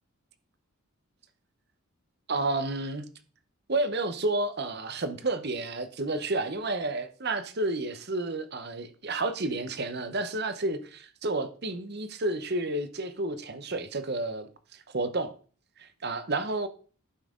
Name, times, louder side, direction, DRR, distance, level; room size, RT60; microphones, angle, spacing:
voice 1, 2.3-3.1 3.7-15.3 15.8-16.7, right 2 dB, 45° right, 0.9 m, -31 dB
11.0 x 5.9 x 3.7 m
head